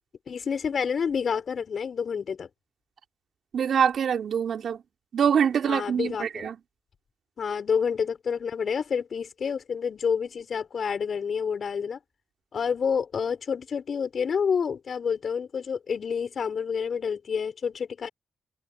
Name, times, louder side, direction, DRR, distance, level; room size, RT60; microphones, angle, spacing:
voice 1, 0.3-2.5 5.7-6.5 7.4-12.0 12.5-18.1, left 6 dB, 55° left, 5.5 m, -28 dB
voice 2, 3.5-4.8 5.1-6.6, right 7 dB, 65° right, 2.9 m, -24 dB
hypercardioid pair, 45°, 0 cm